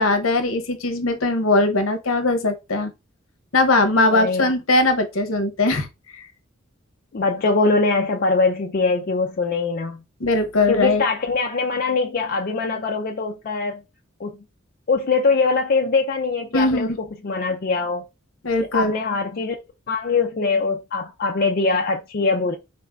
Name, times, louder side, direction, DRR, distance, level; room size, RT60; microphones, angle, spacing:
voice 1, 0.0-2.9 3.5-5.9 10.2-11.0 16.5-17.0 18.4-18.9, left 2 dB, 70° left, 0.9 m, -20 dB
voice 2, 4.1-4.5 7.1-10.0 10.7-13.8 14.2-14.3 14.9-18.0 18.6-19.6 19.9-22.6, left 4 dB, 45° left, 0.5 m, -22 dB
4.1 x 2.6 x 3.4 m
head